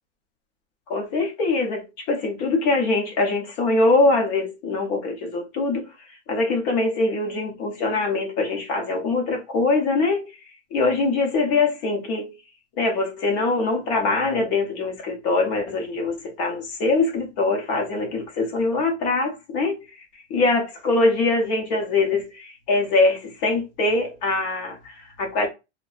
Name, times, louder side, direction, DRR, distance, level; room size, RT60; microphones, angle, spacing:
voice 1, 0.9-5.9 6.3-10.3 10.7-12.3 12.8-19.8 20.3-25.5, left 3 dB, 35° left, 0.8 m, -23 dB
2.6 x 2.2 x 2.4 m
supercardioid pair, 160°, 36 cm